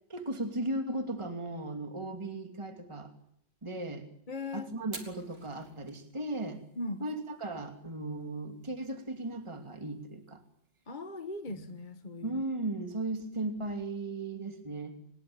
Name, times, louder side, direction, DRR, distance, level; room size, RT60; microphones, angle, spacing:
voice 1, 0.1-3.1 3.6-4.1 4.5-6.6 7.0-10.4 11.5-11.7 12.2-15.0, right 2 dB, 15° right, 6 dB, 2.7 m, -36 dB
voice 2, 4.3-4.7 6.8-7.1 10.9-12.4, left 2 dB, 25° left, 8 dB, 1.4 m, -39 dB
Fire, 4.8-14.0, right 2 dB, 30° right, 3.8 m, -55 dB
25.0 x 21.5 x 8.8 m, 0.69 s
omnidirectional pair, 2.0 m